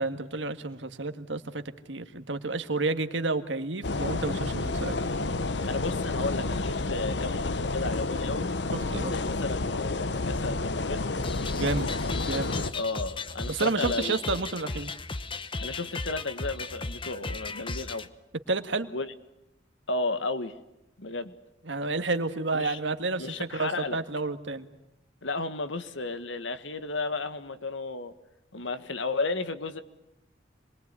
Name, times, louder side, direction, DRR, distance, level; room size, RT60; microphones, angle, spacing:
voice 1, 0.0-5.0 8.9-9.1 11.6-11.9 12.3-12.5 13.5-14.9 18.5-18.9 21.7-24.7, right 3 dB, 80° right, 9 dB, 1.8 m, -30 dB
sound 1, 3.8-12.7, left 3 dB, 65° left, 0.9 m, -30 dB
voice 2, 5.6-8.5 9.0-11.1 12.7-14.1 15.6-18.1 18.9-19.1 19.9-20.6 21.0-21.3 22.5-22.8 23.2-24.0 25.2-28.1 28.5-29.8, left 3 dB, 90° left, 11 dB, 1.8 m, -33 dB
sound 2, 11.2-18.1, left 3 dB, 25° left, 1.0 m, -36 dB
27.0 x 22.0 x 9.7 m, 0.86 s
head